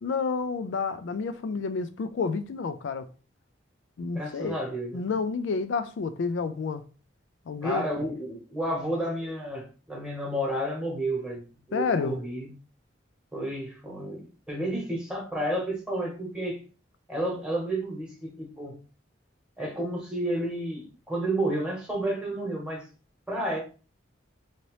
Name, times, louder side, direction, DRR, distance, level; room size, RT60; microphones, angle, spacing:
voice 1, 0.0-3.1 4.0-4.6 4.9-6.8 7.5-8.0 11.7-12.2, left 4 dB, 80° left, 0.4 m, -30 dB
voice 2, 4.1-5.1 7.6-12.5 13.3-16.6 17.1-18.8 19.6-22.9 23.3-23.6, right 1 dB, 5° right, 1.0 m, -31 dB
2.9 x 2.7 x 3.1 m
head